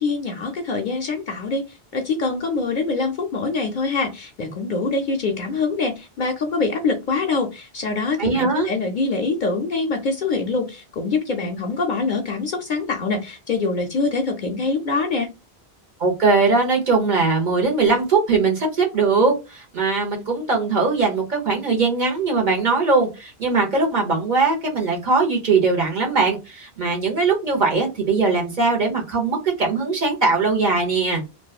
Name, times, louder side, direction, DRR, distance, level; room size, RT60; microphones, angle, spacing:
voice 1, 0.0-1.6 1.9-15.3, left 3 dB, 60° left, 3 dB, 0.6 m, -24 dB
voice 2, 8.2-8.7 16.0-31.2, right 4 dB, 50° right, 0 dB, 0.9 m, -20 dB
2.7 x 2.2 x 2.3 m, 0.26 s
omnidirectional pair, 1.1 m